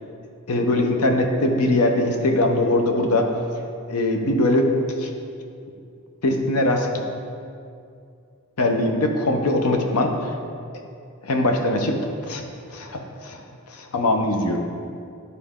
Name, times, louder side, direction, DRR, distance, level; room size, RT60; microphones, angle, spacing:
voice 1, 0.5-3.3 3.9-4.7 5.0-5.1 6.2-7.0 8.6-10.3 11.2-12.0 12.3-12.4 12.7-13.4 13.7-14.6, left 1 dB, 85° left, 3 dB, 0.8 m, -21 dB
11.0 x 4.2 x 3.6 m, 2.4 s
head